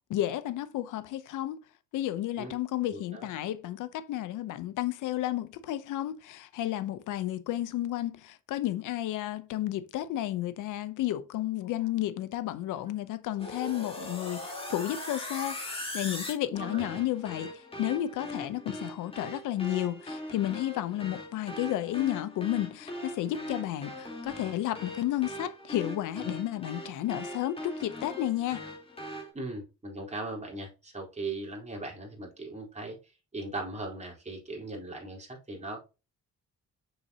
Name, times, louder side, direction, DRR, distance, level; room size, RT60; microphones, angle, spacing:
voice 1, 0.1-1.6 1.9-28.6, left 13 dB, 85° left, 0.8 m, -32 dB
voice 2, 2.9-3.3 16.6-16.8 29.3-33.0 33.3-35.8, right 2 dB, 20° right, 4.2 m, -38 dB
sound 1, 13.4-29.3, left 1 dB, 20° left, 3.8 m, -40 dB
7.1 x 6.6 x 2.9 m
cardioid pair, 90°, 30 cm